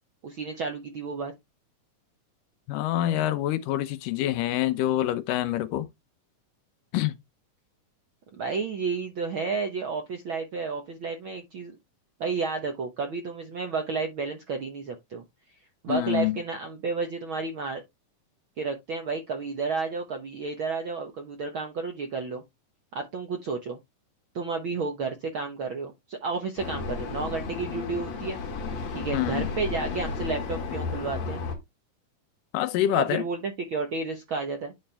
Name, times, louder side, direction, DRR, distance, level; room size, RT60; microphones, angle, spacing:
voice 1, 0.2-1.3 8.4-11.8 12.2-15.2 15.8-17.8 18.6-22.4 22.9-23.8 24.3-28.4 28.9-31.4 32.9-34.7, right 4 dB, 65° right, 1.2 m, -31 dB
voice 2, 2.7-5.9 6.9-7.1 15.9-16.4 29.1-29.5 32.5-33.2, left 13 dB, 80° left, 2.4 m, -26 dB
Vehicle, 26.6-31.6, left 4 dB, 55° left, 2.8 m, -33 dB
10.0 x 4.3 x 3.3 m
omnidirectional pair, 3.8 m